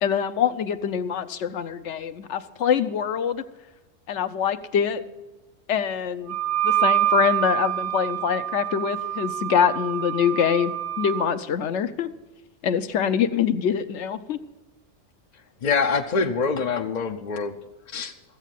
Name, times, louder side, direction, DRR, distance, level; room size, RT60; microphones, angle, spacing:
voice 1, 0.0-3.4 4.1-5.0 5.7-6.4 6.6-10.7 11.0-12.1 12.6-14.4, left 8 dB, 70° left, 11 dB, 1.0 m, -24 dB
Wind instrument woodwind instrument, 6.3-11.2, right 13 dB, 50° right, 0.7 m, -26 dB
voice 2, 15.6-17.6 17.9-18.1, left 5 dB, 50° left, 5 dB, 0.6 m, -25 dB
14.0 x 8.1 x 7.5 m, 1.1 s
omnidirectional pair, 1.3 m